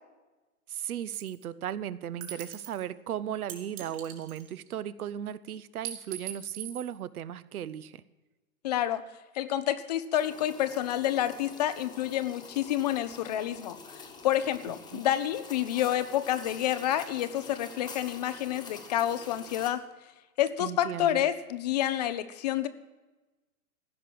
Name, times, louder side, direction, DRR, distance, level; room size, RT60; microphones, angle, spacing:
voice 1, 0.7-8.0 14.9-15.1 20.6-21.2, right 10 dB, 75° right, 17 dB, 0.7 m, -36 dB
sound 1, 1.1-1.4 2.2-2.8 3.5-4.7 5.8-6.9, right 10 dB, 50° right, 2.5 m, -41 dB
voice 2, 8.6-9.0 9.3-19.8 20.4-22.7, left 12 dB, 30° left, 13 dB, 0.4 m, -29 dB
sound 2, 10.1-19.7, left 4 dB, 10° left, 1.2 m, -47 dB
15.5 x 6.0 x 8.4 m, 1.2 s
hypercardioid pair, 125°, 44 cm